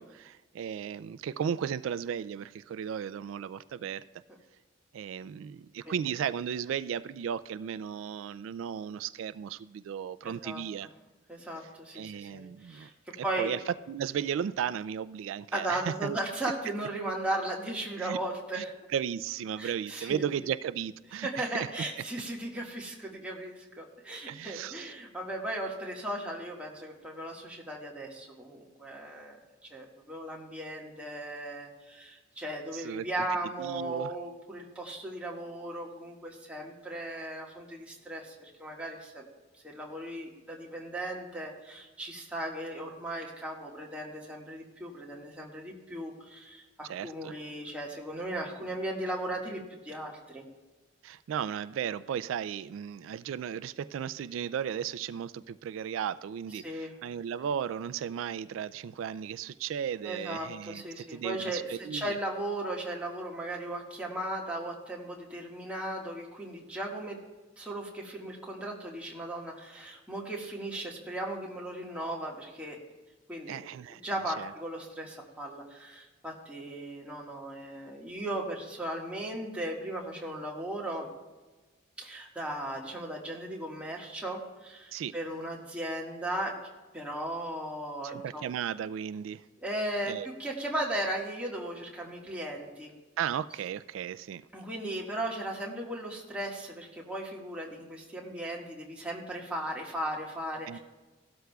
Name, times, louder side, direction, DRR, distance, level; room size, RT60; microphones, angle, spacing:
voice 1, 0.0-4.0 4.9-10.9 11.9-16.2 18.0-18.2 18.5-18.6 18.9-21.7 24.3-24.9 32.7-33.0 33.6-34.1 46.8-47.3 51.0-62.2 73.5-74.0 74.3-74.5 84.9-85.1 88.0-89.5 90.1-90.3 93.2-94.4 100.7-100.8, right 8 dB, 90° right, 15 dB, 0.3 m, -35 dB
voice 2, 10.2-10.6 11.3-13.5 15.5-18.7 19.6-20.2 21.2-29.4 29.7-39.2 39.6-50.4 56.6-56.9 60.0-67.2 67.6-72.8 73.3-73.6 74.0-81.1 82.0-86.6 86.9-88.4 89.6-92.9 94.5-100.8, right 1 dB, 5° right, -3 dB, 1.6 m, -37 dB
16.5 x 12.5 x 2.3 m, 1.2 s
head